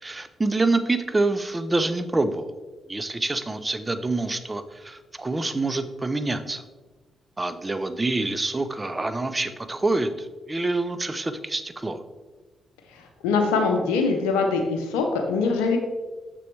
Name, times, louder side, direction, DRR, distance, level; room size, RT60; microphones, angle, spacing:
voice 1, 0.0-2.5 2.9-6.6 7.4-12.0, right 2 dB, 25° right, 10 dB, 0.7 m, -26 dB
voice 2, 12.9-15.8, left 4 dB, 85° left, 3 dB, 0.6 m, -23 dB
6.8 x 6.6 x 3.3 m, 1.2 s
hypercardioid pair, 45°, 0 cm